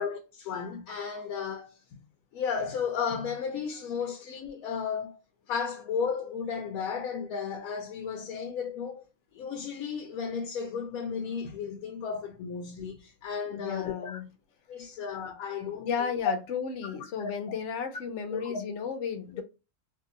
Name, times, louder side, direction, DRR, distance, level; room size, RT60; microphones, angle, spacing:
voice 1, 0.0-2.0 2.3-5.2 5.5-9.0 9.3-14.2 14.7-16.1 17.2-17.3 18.3-18.6 19.3-19.4, left 6 dB, 90° left, 1.0 m, -34 dB
voice 2, 13.5-14.3 15.7-19.4, left 6 dB, 65° left, 0.9 m, -34 dB
2.7 x 2.6 x 2.5 m
omnidirectional pair, 1.5 m